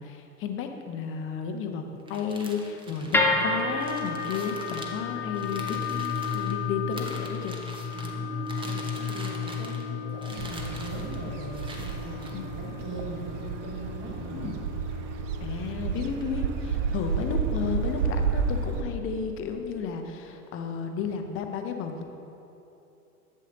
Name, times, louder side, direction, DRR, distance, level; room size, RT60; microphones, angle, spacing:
voice 1, 0.0-7.5 12.3-12.4 14.2-14.7 15.4-22.1, left 6 dB, 30° left, 5 dB, 0.9 m, -33 dB
sound 1, 2.0-6.5 6.9-8.1 8.5-9.9 10.2-11.2 11.5-12.3, right 1 dB, 10° right, 0.9 m, -43 dB
sound 2, 3.1-19.3, left 4 dB, 5° left, 0.5 m, -33 dB
voice 2, 7.9-14.6, right 2 dB, 25° right, -3 dB, 2.1 m, -40 dB
sound 3, 10.4-18.8, right 5 dB, 55° right, 0.7 m, -31 dB
11.0 x 7.6 x 3.9 m, 2.9 s
figure-of-eight pair, 85°, 44 cm